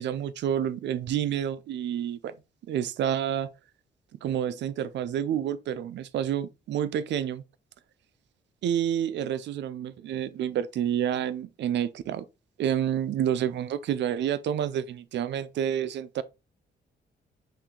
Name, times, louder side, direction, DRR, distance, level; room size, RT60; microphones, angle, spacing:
voice 1, 0.0-2.3 2.7-3.5 4.2-7.4 8.6-12.3 12.6-16.2, right 10 dB, 75° right, 0.5 m, -29 dB
5.8 x 2.5 x 3.7 m
cardioid pair, 95°, 18 cm